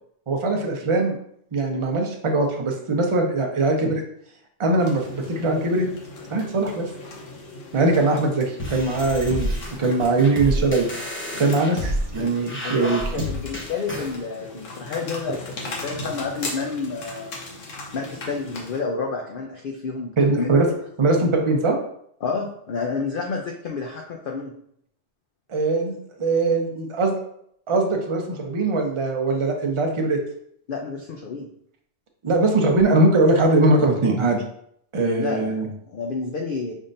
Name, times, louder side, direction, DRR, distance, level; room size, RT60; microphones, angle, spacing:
voice 1, 0.3-1.2 1.5-4.0 4.6-5.1 5.4-5.9 6.3-6.9 7.7-11.0 11.3-13.0 20.2-20.7 21.0-21.8 25.5-27.2 27.7-30.2 32.2-34.4 34.9-35.7, right 2 dB, 30° right, 2 dB, 0.6 m, -21 dB
sound 1, 4.8-18.8, left 2 dB, 80° left, 1.2 m, -39 dB
sound 2, 8.6-14.2, equal, 10° left, 0.7 m, -30 dB
voice 2, 12.6-17.3 17.9-20.6 22.2-24.5 30.7-31.5 35.2-36.7, left 4 dB, 60° left, 1 dB, 0.6 m, -30 dB
5.4 x 3.6 x 2.6 m, 0.69 s
omnidirectional pair, 1.3 m